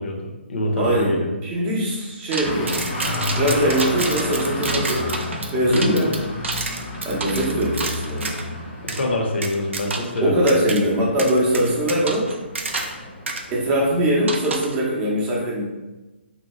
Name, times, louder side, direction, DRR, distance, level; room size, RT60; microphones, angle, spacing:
voice 1, 0.0-1.3 5.6-6.2 8.8-10.5, left 1 dB, 65° left, 0 dB, 0.7 m, -24 dB
voice 2, 0.8-2.8 3.3-5.1 5.5-6.1 7.0-8.3 10.2-12.3 13.5-15.6, right 1 dB, 20° right, -4 dB, 0.6 m, -21 dB
sound 1, 2.3-8.5 8.9-9.0 9.4-10.2 10.5-10.8 11.2-13.0 13.3-13.4 14.3-14.8, right 3 dB, 75° right, 0.4 m, -29 dB
Traffic noise roadway noise, 2.4-14.2, left 1 dB, 20° left, 0.7 m, -31 dB
2.7 x 2.1 x 3.0 m, 1.1 s
hypercardioid pair, 145°, 7 cm